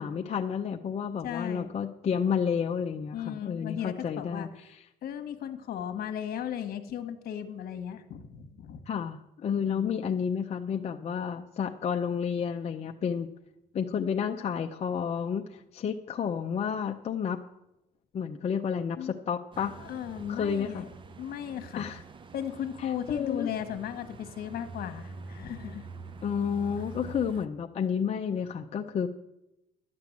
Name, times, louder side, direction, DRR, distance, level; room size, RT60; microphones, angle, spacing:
voice 1, 0.0-4.5 8.9-13.3 13.7-17.4 18.1-19.7 20.3-20.8 21.8-22.0 23.1-23.5 26.2-29.1, left 7 dB, 40° left, 3 dB, 0.6 m, -30 dB
voice 2, 1.2-1.7 3.1-4.7 5.0-8.8 9.6-10.0 19.0-19.1 19.6-20.9 21.2-22.0 22.3-25.8, left 9 dB, 65° left, 8 dB, 1.3 m, -36 dB
sound 1, 19.5-27.5, right 4 dB, 30° right, 0.7 m, -46 dB
11.5 x 7.6 x 7.3 m, 0.89 s
cardioid pair, 110°, 17 cm